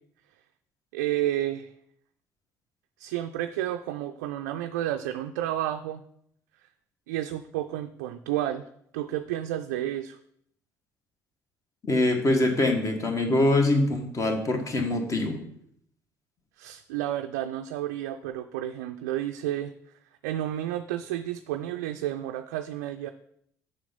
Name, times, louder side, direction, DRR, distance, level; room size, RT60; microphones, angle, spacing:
voice 1, 0.9-1.7 3.0-6.0 7.1-8.6 8.9-10.2 16.6-19.7 20.2-23.1, right 12 dB, 70° right, 6 dB, 0.4 m, -31 dB
voice 2, 11.9-15.4, left 2 dB, 35° left, 4 dB, 1.6 m, -24 dB
7.5 x 5.9 x 5.3 m, 0.69 s
figure-of-eight pair, 50°, 9 cm